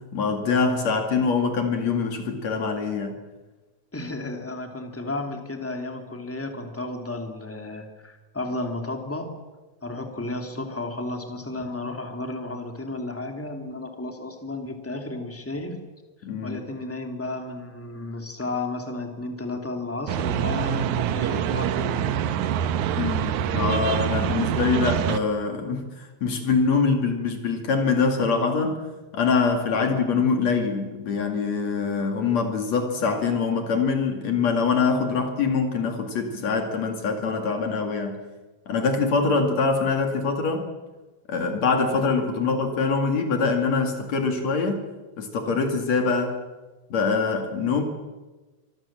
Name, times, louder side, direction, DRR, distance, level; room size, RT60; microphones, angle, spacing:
voice 1, 0.1-3.2 16.2-16.6 23.0-28.8 29.1-38.2 38.7-40.6 41.3-44.8 45.2-46.4 46.9-47.8, left 4 dB, 65° left, 5 dB, 3.5 m, -24 dB
voice 2, 3.9-9.3 9.8-15.8 16.4-22.5, left 2 dB, 5° left, 4 dB, 2.6 m, -33 dB
sound 1, 20.1-25.2, right 9 dB, 90° right, 2.4 m, -25 dB
25.0 x 22.5 x 7.5 m, 1.2 s
omnidirectional pair, 3.3 m